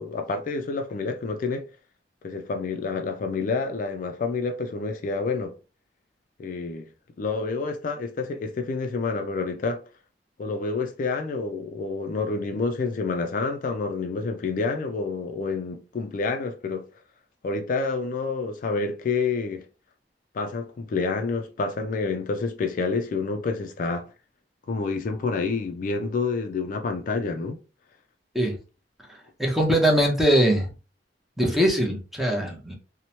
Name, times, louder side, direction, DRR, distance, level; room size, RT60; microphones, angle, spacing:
voice 1, 0.0-1.6 2.2-5.6 6.4-6.9 7.2-9.8 10.4-16.8 17.4-19.7 20.3-24.1 24.7-27.6, left 4 dB, 50° left, 0.3 m, -28 dB
voice 2, 29.4-30.7 31.4-32.8, equal, ahead, 0.6 m, -21 dB
2.9 x 2.1 x 2.7 m
head